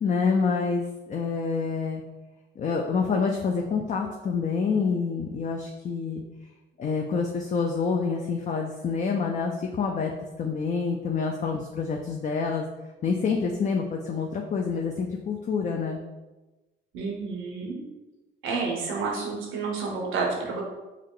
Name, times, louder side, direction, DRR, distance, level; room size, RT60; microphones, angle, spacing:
voice 1, 0.0-2.0 2.6-6.2 6.8-10.1 10.4-12.7 13.0-16.0, left 5 dB, 40° left, 1 dB, 0.4 m, -27 dB
voice 2, 16.9-17.8 18.4-20.6, right 4 dB, 90° right, -1 dB, 1.0 m, -30 dB
4.8 x 2.2 x 3.7 m, 1.1 s
cardioid pair, 90°, 20 cm